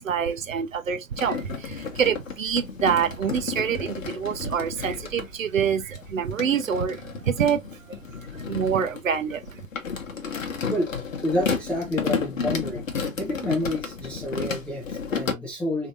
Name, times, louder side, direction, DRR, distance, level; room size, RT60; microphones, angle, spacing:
voice 1, 0.0-7.6 7.9-8.0 8.3-9.6, right 7 dB, 70° right, 0.7 m, -26 dB
sound 1, 1.1-5.3 5.9-15.3, left 5 dB, 65° left, 1.1 m, -32 dB
voice 2, 11.2-12.8 13.2-15.9, left 1 dB, 5° left, 0.4 m, -29 dB
3.6 x 2.9 x 2.5 m
figure-of-eight pair, 115°, 41 cm